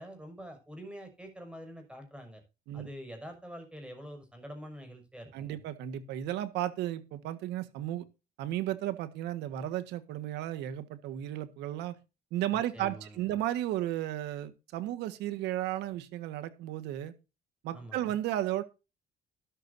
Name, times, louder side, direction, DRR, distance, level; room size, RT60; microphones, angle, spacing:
voice 1, 0.0-2.4 2.7-5.6 12.5-13.3 17.7-18.2, equal, 5° right, 6.3 m, -46 dB
voice 2, 5.3-8.0 8.4-11.9 12.3-17.1 17.6-18.6, right 13 dB, 85° right, 1.6 m, -34 dB
13.0 x 12.0 x 2.7 m
cardioid pair, 110°, 17 cm